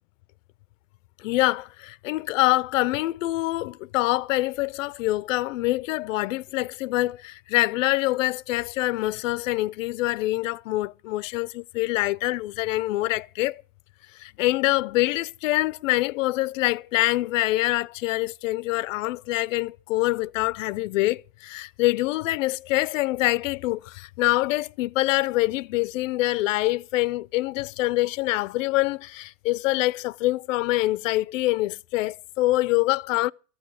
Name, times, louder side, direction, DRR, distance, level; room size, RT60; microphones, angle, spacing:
voice 1, 1.2-13.6 14.2-33.3, left 18 dB, 90° left, 0.5 m, -25 dB
14.5 x 6.3 x 8.3 m
supercardioid pair, 155°, 37 cm